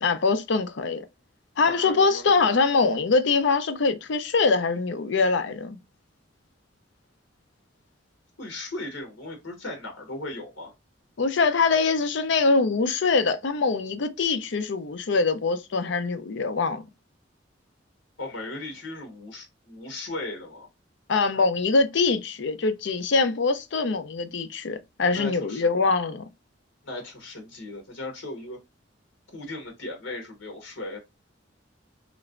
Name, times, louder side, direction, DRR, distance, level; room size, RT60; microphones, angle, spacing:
voice 1, 0.0-1.0 1.6-5.8 11.2-16.8 21.1-26.2, left 4 dB, 65° left, 0.6 m, -23 dB
voice 2, 1.6-2.3 8.4-10.7 18.2-20.7 25.0-25.6 26.8-28.6 29.3-31.0, left 2 dB, 85° left, 1.2 m, -37 dB
3.2 x 3.0 x 2.4 m
head